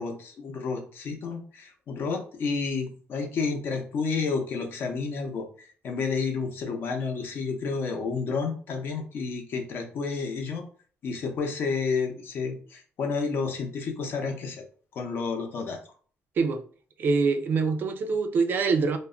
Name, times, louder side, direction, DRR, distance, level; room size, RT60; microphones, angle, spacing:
voice 1, 0.0-10.6 11.0-14.6 14.9-15.8, left 4 dB, 55° left, 0.6 m, -30 dB
voice 2, 17.0-19.0, right 4 dB, 50° right, 0.4 m, -24 dB
2.2 x 2.1 x 3.6 m
cardioid pair, 145°, 4 cm